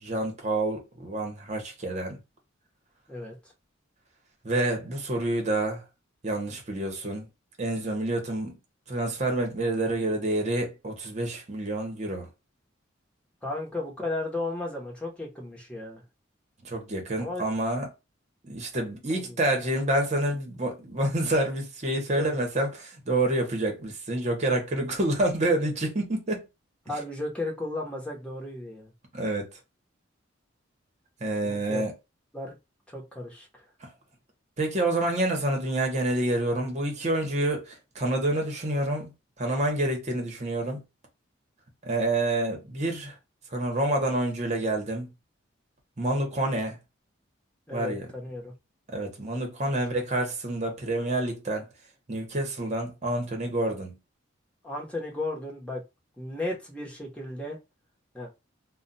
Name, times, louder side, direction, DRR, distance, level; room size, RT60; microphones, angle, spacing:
voice 1, 0.0-2.2 4.4-5.8 6.2-7.3 7.6-8.6 8.9-12.3 16.6-17.9 18.4-26.4 29.1-29.5 31.2-31.9 33.8-33.9 34.6-39.1 39.4-40.8 41.8-43.2 43.5-45.1 46.0-46.8 47.7-48.1 48.9-51.7 52.1-54.0, right 1 dB, 35° right, 0.9 m, -28 dB
voice 2, 13.4-16.0 17.2-17.5 19.1-19.4 22.1-22.3 26.8-28.9 31.4-31.8 32.3-32.5 32.9-33.6 47.7-48.5 54.6-55.8 56.2-57.6 58.1-58.3, left 2 dB, 5° left, 0.9 m, -34 dB
2.4 x 2.2 x 3.9 m
head